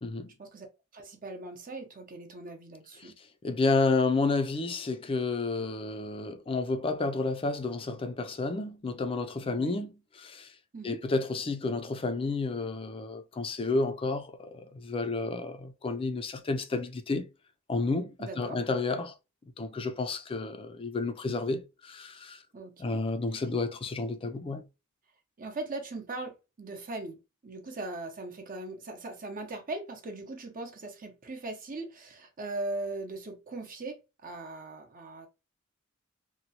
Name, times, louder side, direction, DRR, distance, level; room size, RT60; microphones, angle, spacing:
voice 1, 0.0-0.3 3.0-3.1 3.4-10.5 10.8-17.3 17.7-19.1 19.6-22.4 22.8-24.6, left 3 dB, 25° left, 0.4 m, -31 dB
voice 2, 0.9-3.1 9.5-9.8 10.7-11.0 18.2-18.6 22.5-23.0 25.4-35.3, right 2 dB, 40° right, 0.7 m, -39 dB
2.9 x 2.2 x 2.8 m
head